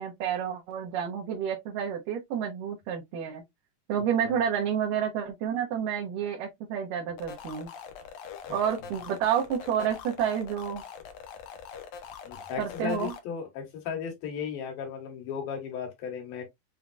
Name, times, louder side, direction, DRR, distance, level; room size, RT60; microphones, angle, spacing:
voice 1, 0.0-3.4 3.9-7.7 8.5-10.8 12.6-13.1, right 8 dB, 75° right, 2.5 m, -29 dB
sound 1, 7.2-13.2, left 7 dB, 70° left, 1.7 m, -43 dB
voice 2, 12.2-16.4, left 7 dB, 90° left, 3.4 m, -35 dB
7.3 x 2.9 x 2.4 m
omnidirectional pair, 4.0 m